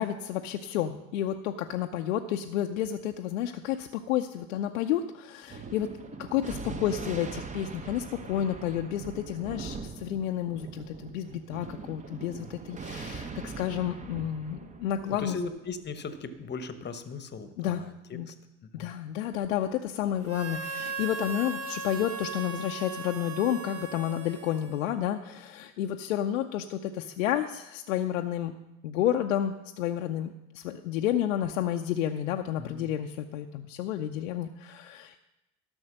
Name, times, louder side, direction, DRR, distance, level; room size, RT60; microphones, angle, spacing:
voice 1, 0.0-5.9 6.2-15.4 17.6-17.8 18.1-18.3 18.7-28.5 28.8-35.2, left 11 dB, 70° left, 4 dB, 0.6 m, -31 dB
Thunder, 5.5-16.3, right 4 dB, 20° right, 0.9 m, -42 dB
voice 2, 15.2-18.3 18.7-18.9 32.6-32.9, left 4 dB, 25° left, 11 dB, 1.0 m, -38 dB
Harmonica, 20.2-25.1, right 4 dB, 35° right, 1.3 m, -38 dB
12.5 x 6.3 x 6.3 m, 0.94 s
figure-of-eight pair, 70°, 41 cm